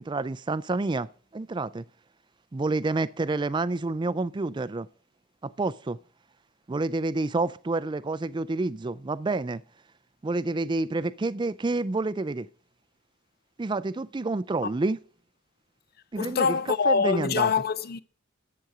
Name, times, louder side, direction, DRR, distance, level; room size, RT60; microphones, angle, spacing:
voice 1, 0.0-1.8 2.5-4.9 5.4-6.0 6.7-9.6 10.2-12.5 13.6-15.0 16.1-16.6 16.9-17.5, right 3 dB, 25° right, 0.4 m, -28 dB
voice 2, 16.2-18.0, left 5 dB, 50° left, 0.5 m, -24 dB
10.5 x 7.8 x 4.9 m
head